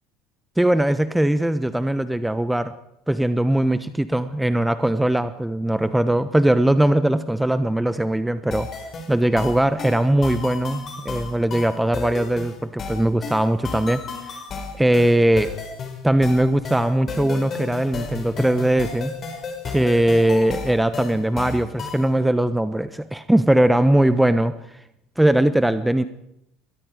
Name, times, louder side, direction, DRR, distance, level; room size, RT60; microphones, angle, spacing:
voice 1, 0.6-2.7 3.1-8.7 9.1-14.0 14.3-14.4 14.8-15.5 16.0-19.1 19.6-24.8 25.2-26.0, right 1 dB, 5° right, 13 dB, 1.1 m, -20 dB
sound 1, 8.5-22.1, left 4 dB, 35° left, 5.7 m, -33 dB
28.0 x 22.5 x 5.0 m, 0.81 s
figure-of-eight pair, 65°, 0 cm